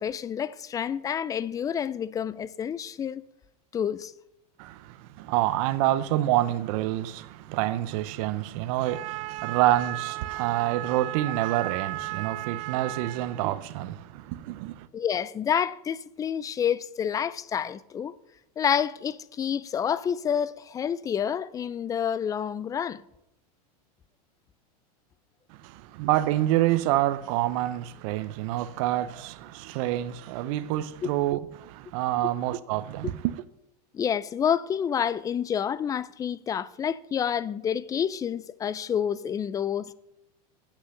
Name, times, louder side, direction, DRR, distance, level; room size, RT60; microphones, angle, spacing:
voice 1, 0.0-3.2 3.7-4.1 14.9-18.1 18.6-23.0 31.0-31.1 32.2-32.3 33.0-33.1 33.9-39.9, left 8 dB, 15° left, 0.3 m, -28 dB
voice 2, 4.6-14.9 25.5-33.4, right 14 dB, 60° right, 0.6 m, -27 dB
8.3 x 6.0 x 6.5 m
supercardioid pair, 125°, 20 cm